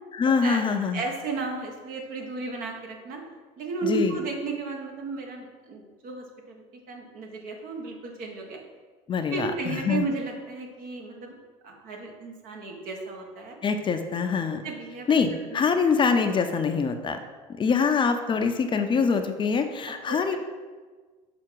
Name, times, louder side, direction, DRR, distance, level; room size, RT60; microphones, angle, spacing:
voice 1, 0.1-1.0 3.8-4.2 9.1-10.1 13.6-14.6 15.1-17.2 17.6-20.4, left 5 dB, 30° left, 6 dB, 0.6 m, -24 dB
voice 2, 0.9-3.2 3.6-8.6 9.3-11.3 11.6-13.6 14.6-15.1 15.5-15.6 19.9-20.4, right 3 dB, 65° right, 2 dB, 1.3 m, -34 dB
6.0 x 4.3 x 4.6 m, 1.4 s
supercardioid pair, 90°, 16 cm